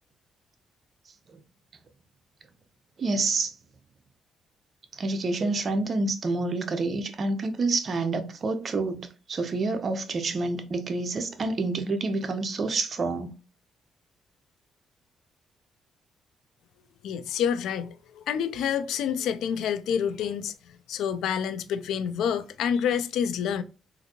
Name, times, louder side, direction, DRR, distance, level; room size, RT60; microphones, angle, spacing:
voice 1, 3.0-3.5 5.0-13.3, right 3 dB, 45° right, 0.6 m, -28 dB
voice 2, 17.0-23.6, left 8 dB, 80° left, 0.3 m, -28 dB
3.7 x 2.5 x 2.8 m
cardioid pair, 90°, 0 cm